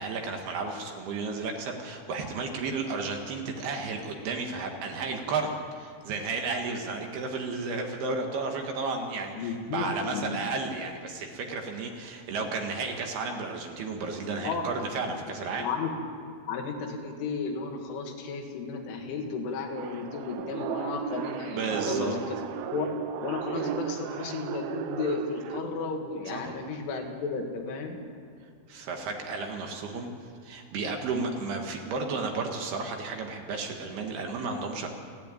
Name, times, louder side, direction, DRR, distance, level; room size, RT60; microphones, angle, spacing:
voice 1, 0.0-15.7 21.5-22.2 26.3-26.5 28.7-30.1 30.4-34.9, right 4 dB, 65° right, 3 dB, 3.1 m, -33 dB
voice 2, 9.3-10.4 14.4-14.6 15.6-15.9 16.5-22.2 22.7-22.9 23.2-28.0, left 4 dB, 80° left, 2 dB, 4.5 m, -33 dB
sound 1, 19.7-25.6, right 9 dB, 90° right, 2.2 m, -35 dB
29.5 x 10.0 x 9.1 m, 2.2 s
omnidirectional pair, 5.5 m